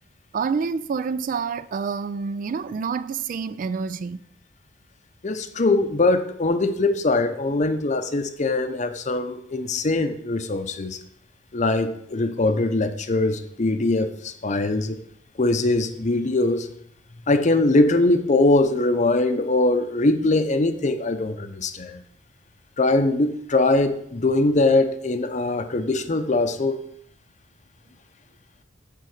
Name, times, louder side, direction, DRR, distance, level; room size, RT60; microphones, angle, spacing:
voice 1, 0.3-4.2, right 5 dB, 45° right, 0.3 m, -27 dB
voice 2, 5.2-11.0 11.5-15.0 15.4-16.7 17.3-22.0 22.8-26.8, left 2 dB, 40° left, 0.6 m, -22 dB
8.3 x 3.8 x 6.5 m
head